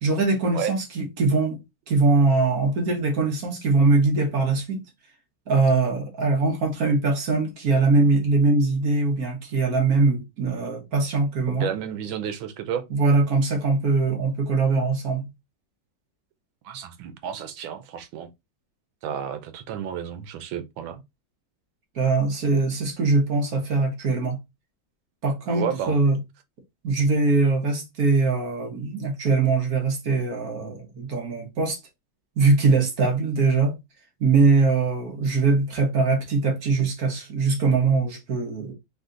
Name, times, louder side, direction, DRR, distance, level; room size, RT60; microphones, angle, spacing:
voice 1, 0.0-1.6 1.9-4.8 5.5-11.7 12.9-15.3 21.9-24.4 25.2-26.2 26.8-31.8 32.4-33.7 34.2-38.7, right 3 dB, 55° right, 1.5 m, -22 dB
voice 2, 11.6-12.9 16.6-18.3 19.0-21.0 25.5-26.0, right 9 dB, 90° right, 1.5 m, -31 dB
4.0 x 2.8 x 3.7 m
omnidirectional pair, 2.1 m